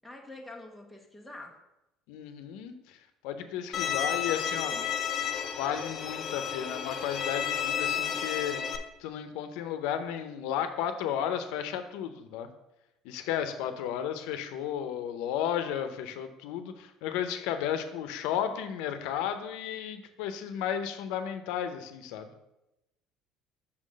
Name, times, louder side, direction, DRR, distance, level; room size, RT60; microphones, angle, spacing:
voice 1, 0.0-1.6, left 2 dB, ahead, 3 dB, 0.8 m, -46 dB
voice 2, 2.1-3.0 3.2-4.9 5.6-8.6 9.0-12.5 13.0-22.3, left 9 dB, 80° left, 9 dB, 0.7 m, -33 dB
Bowed string instrument, 3.7-8.8, left 8 dB, 30° left, 0.5 m, -32 dB
6.0 x 3.9 x 6.2 m, 0.92 s
cardioid pair, 170°, 0 cm